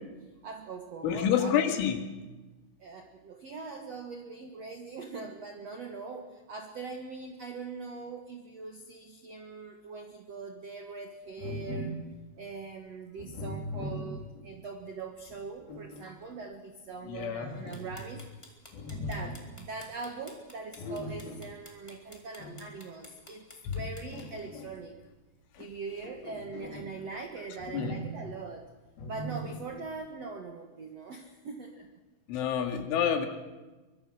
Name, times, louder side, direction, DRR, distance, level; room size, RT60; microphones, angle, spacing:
voice 1, 0.4-1.6 2.8-12.0 12.4-18.2 18.9-25.0 25.6-28.7 29.0-31.9, right 4 dB, 75° right, 5 dB, 1.5 m, -42 dB
voice 2, 1.0-2.1 17.0-17.5 23.7-23.8 25.6-25.7 27.7-28.0 32.3-33.3, left 8 dB, 80° left, 5 dB, 4.5 m, -28 dB
sound 1, 11.4-12.2 13.2-14.5 15.3-16.2 17.4-18.3 18.7-19.5 20.8-21.5 22.4-22.7 23.8-25.0 25.8-27.0 27.6-28.4 29.0-29.8, equal, 55° left, 4.8 m, -40 dB
sound 2, 17.7-24.2, left 1 dB, 5° left, 3.1 m, -51 dB
24.0 x 22.5 x 6.3 m, 1.2 s
omnidirectional pair, 5.5 m